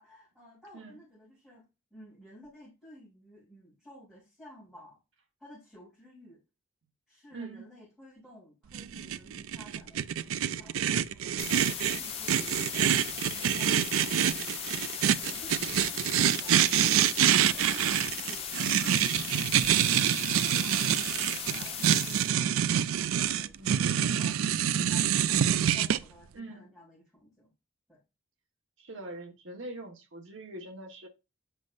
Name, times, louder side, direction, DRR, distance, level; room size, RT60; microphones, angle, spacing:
voice 1, 0.0-1.6 1.9-5.0 5.4-6.4 7.1-13.0 13.3-14.6 15.3-18.5 18.9-22.3 23.1-25.4 25.7-27.5 27.9-28.0, equal, 5° right, 3.4 m, -53 dB
voice 2, 7.3-7.7 23.6-24.0 26.3-26.7 28.8-31.1, right 2 dB, 70° right, 1.3 m, -43 dB
sound 1, 8.7-26.0, right 10 dB, 90° right, 0.4 m, -26 dB
sound 2, 11.4-22.3, left 7 dB, 30° left, 0.9 m, -38 dB
8.0 x 5.3 x 2.5 m
head